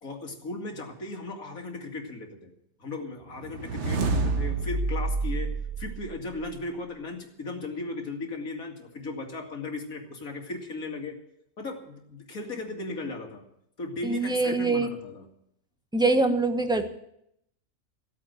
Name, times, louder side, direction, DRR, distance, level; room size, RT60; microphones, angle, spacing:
voice 1, 0.0-2.5 2.8-11.2 11.6-13.5 13.8-15.3, left 3 dB, 85° left, 2 dB, 2.8 m, -36 dB
sound 1, 3.4-6.6, right 3 dB, 55° right, 1.5 m, -29 dB
voice 2, 14.0-14.9 15.9-16.9, right 3 dB, 5° right, 7 dB, 1.1 m, -24 dB
16.0 x 8.8 x 9.1 m, 0.75 s
omnidirectional pair, 1.4 m